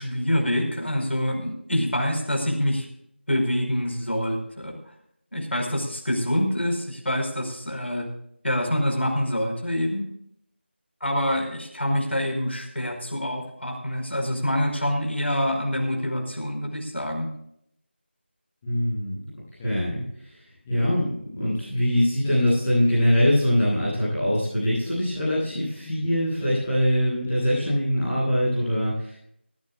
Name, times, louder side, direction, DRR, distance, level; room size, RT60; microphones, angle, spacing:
voice 1, 0.0-2.9 3.3-4.8 5.3-8.1 8.4-10.1 11.0-17.3, equal, 70° left, 1 dB, 5.2 m, -26 dB
voice 2, 18.6-19.1 19.6-20.3 20.6-29.1, equal, ahead, -14 dB, 0.4 m, -23 dB
19.0 x 16.0 x 2.5 m, 0.72 s
figure-of-eight pair, 170°, 6 cm